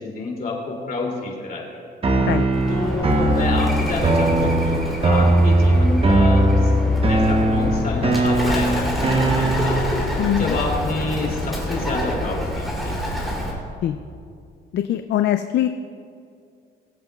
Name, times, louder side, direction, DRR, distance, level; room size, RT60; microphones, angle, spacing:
voice 1, 0.0-1.8 2.7-6.7 7.1-9.9 10.4-13.0, left 3 dB, 45° left, -2 dB, 2.7 m, -28 dB
sound 1, 2.0-10.0, right 2 dB, 30° right, 0.9 m, -20 dB
Bird, 2.5-13.5, left 1 dB, ahead, 2.9 m, -25 dB
voice 2, 14.7-15.7, left 11 dB, 60° left, 9 dB, 0.4 m, -21 dB
21.5 x 7.8 x 2.3 m, 2.4 s
cardioid pair, 90°, 20 cm